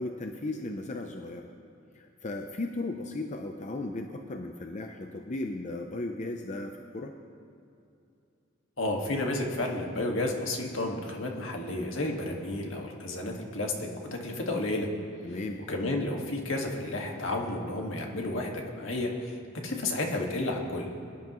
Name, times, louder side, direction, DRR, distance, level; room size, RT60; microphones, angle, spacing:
voice 1, 0.0-1.5 1.9-7.1 15.2-15.6, left 2 dB, 40° left, 4 dB, 0.6 m, -36 dB
voice 2, 8.8-14.9 15.7-19.4 19.6-20.9, left 2 dB, 75° left, 1 dB, 1.9 m, -31 dB
23.5 x 11.0 x 3.1 m, 2.6 s
head